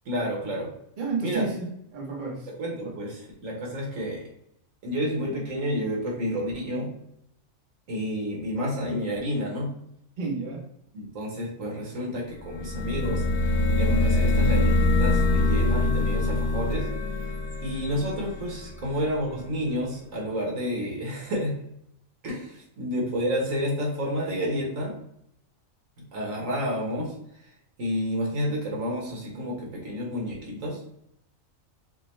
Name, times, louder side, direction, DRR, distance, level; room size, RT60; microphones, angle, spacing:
voice 1, 0.0-0.7 1.2-1.5 2.6-4.2 4.8-6.9 7.9-9.7 10.9-16.9 17.2-17.3 17.6-21.6 22.2-24.9 26.0-27.1 27.4-27.5 27.8-30.8, equal, 75° right, -2 dB, 1.6 m, -30 dB
voice 2, 1.0-2.5 2.8-2.9 10.2-10.6, right 4 dB, 40° right, -1 dB, 1.0 m, -31 dB
sound 1, 12.4-19.1, left 2 dB, 35° left, 0.8 m, -24 dB
6.3 x 2.2 x 3.1 m, 0.76 s
omnidirectional pair, 1.4 m